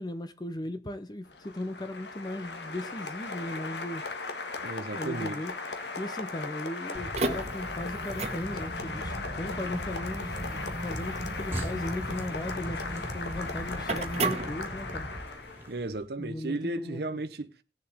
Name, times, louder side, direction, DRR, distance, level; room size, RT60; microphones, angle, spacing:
voice 1, 0.0-4.0 4.9-5.6 6.0-15.1 16.2-17.2, left 1 dB, 25° left, 0.6 m, -37 dB
Applause, 1.3-15.7, left 3 dB, 75° left, 1.7 m, -38 dB
voice 2, 4.6-5.4 15.7-17.6, right 2 dB, 60° right, 0.8 m, -34 dB
sound 1, 6.9-15.2, right 2 dB, 35° right, 1.4 m, -35 dB
sound 2, 8.2-16.1, equal, 15° right, 2.4 m, -45 dB
19.0 x 7.3 x 3.4 m
head